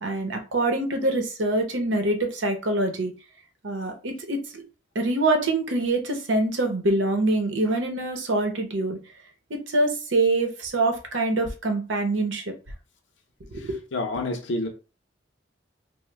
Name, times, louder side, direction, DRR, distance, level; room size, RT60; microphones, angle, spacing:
voice 1, 0.0-3.1 3.6-4.6 4.9-9.0 9.5-12.4 13.5-13.8, right 2 dB, 85° right, 0.8 m, -25 dB
voice 2, 13.9-14.7, left 2 dB, 75° left, 0.6 m, -27 dB
3.0 x 2.1 x 3.3 m
head